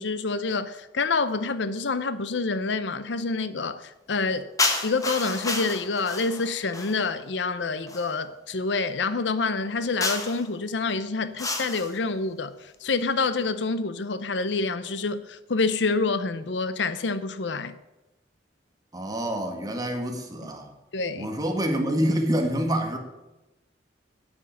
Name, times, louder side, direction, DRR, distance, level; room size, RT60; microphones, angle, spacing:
voice 1, 0.0-4.5 4.8-17.7 20.4-20.5 20.9-21.3, left 3 dB, 70° left, 0.7 m, -27 dB
sound 1, 4.6-7.1 7.9-8.1 10.0-10.5 11.4-12.0, left 3 dB, 20° left, 1.3 m, -30 dB
voice 2, 18.9-20.7 21.2-23.0, equal, 20° right, 1.8 m, -27 dB
9.7 x 7.9 x 8.6 m
head